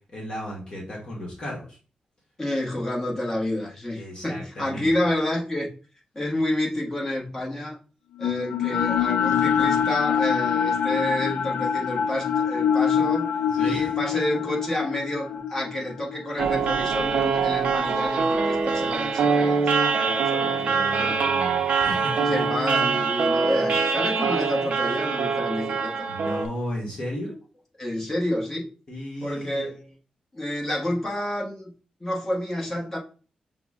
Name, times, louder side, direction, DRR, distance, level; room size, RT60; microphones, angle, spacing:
voice 1, 0.1-1.8 4.0-4.9 13.5-13.9 14.4-14.5 20.4-22.4 26.1-27.4 28.9-29.6, equal, 35° left, 1.3 m, -34 dB
voice 2, 2.4-5.7 6.1-7.8 8.2-21.3 22.2-26.1 27.8-28.7 29.2-29.9 30.3-31.7 32.0-33.0, left 1 dB, 15° left, 1.1 m, -29 dB
sound 1, 8.2-18.4, left 7 dB, 85° left, 0.4 m, -25 dB
sound 2, 16.4-26.5, right 5 dB, 65° right, 0.5 m, -24 dB
5.8 x 2.1 x 3.5 m
wide cardioid pair, 175°, 2 cm